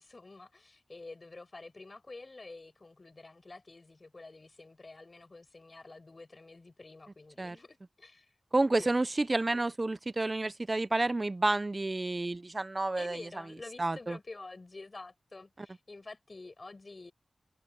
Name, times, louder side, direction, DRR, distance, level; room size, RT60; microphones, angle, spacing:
voice 1, 0.0-8.3 8.8-8.9 13.0-17.1, left 3 dB, 45° left, 5.9 m, -49 dB
voice 2, 8.5-13.2 13.8-14.2, right 2 dB, 35° right, 0.5 m, -30 dB
wide cardioid pair, 75°, 0 cm